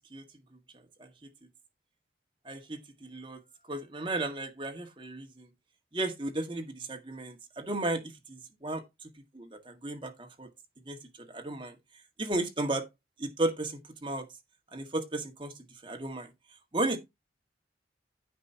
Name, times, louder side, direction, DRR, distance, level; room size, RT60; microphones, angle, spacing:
voice 1, 2.4-3.4 3.7-5.5 5.9-8.8 9.3-10.5 10.9-11.8 12.2-12.9 13.2-14.2 14.7-15.5 15.8-16.3 16.7-17.0, right 2 dB, 25° right, 1.8 m, -34 dB
15.5 x 5.3 x 2.8 m
head